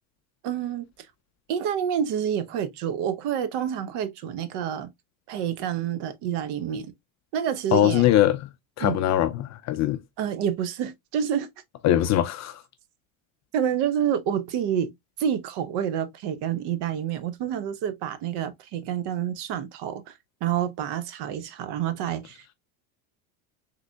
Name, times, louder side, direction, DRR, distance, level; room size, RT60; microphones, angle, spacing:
voice 1, 0.4-0.9 1.5-4.9 5.3-6.9 7.3-8.1 8.8-9.0 10.2-11.5 13.5-14.9 15.2-22.5, right 9 dB, 55° right, 0.7 m, -28 dB
voice 2, 7.7-8.5 8.8-10.0 11.8-12.6, left 12 dB, 40° left, 0.4 m, -21 dB
3.6 x 3.2 x 2.2 m
hypercardioid pair, 90°, 48 cm